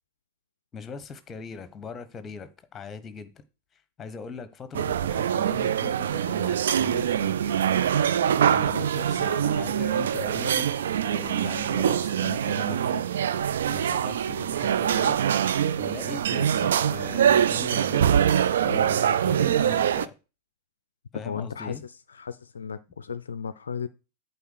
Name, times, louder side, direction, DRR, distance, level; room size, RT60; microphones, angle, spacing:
voice 1, 0.7-3.4 4.0-7.4 8.4-13.0 13.7-15.2 15.8-18.0 18.6-20.1 21.1-21.8, left 5 dB, 20° left, 1.0 m, -40 dB
sound 1, 4.7-20.1, right 9 dB, 60° right, 0.4 m, -24 dB
voice 2, 21.2-23.9, left 6 dB, 70° left, 0.4 m, -35 dB
8.4 x 4.4 x 6.6 m
figure-of-eight pair, 90°, 0 cm